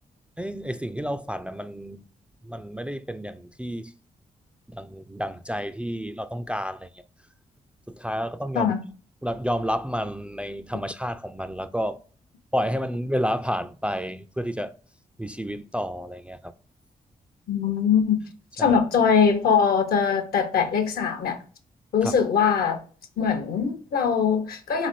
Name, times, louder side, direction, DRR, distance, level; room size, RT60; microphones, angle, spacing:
voice 1, 0.4-2.0 2.4-3.9 4.7-7.0 7.9-8.7 9.2-12.0 12.5-14.7 15.2-16.5 18.6-18.8 22.0-22.1, equal, 5° right, 0.3 m, -30 dB
voice 2, 17.5-18.2 18.6-21.4 21.9-22.8 23.2-24.9, left 6 dB, 70° left, 0.7 m, -22 dB
3.6 x 3.2 x 2.5 m
supercardioid pair, 45°, 16 cm